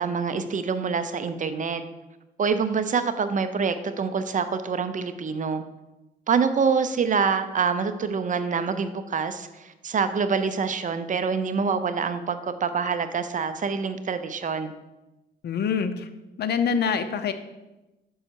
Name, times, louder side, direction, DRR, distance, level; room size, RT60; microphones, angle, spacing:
voice 1, 0.0-1.8 2.4-5.6 6.3-14.7, right 5 dB, 40° right, 10 dB, 0.6 m, -26 dB
voice 2, 15.4-16.1 16.4-17.3, left 6 dB, 55° left, 9 dB, 0.7 m, -25 dB
6.2 x 5.5 x 4.6 m, 1.0 s
cardioid pair, 90°, 20 cm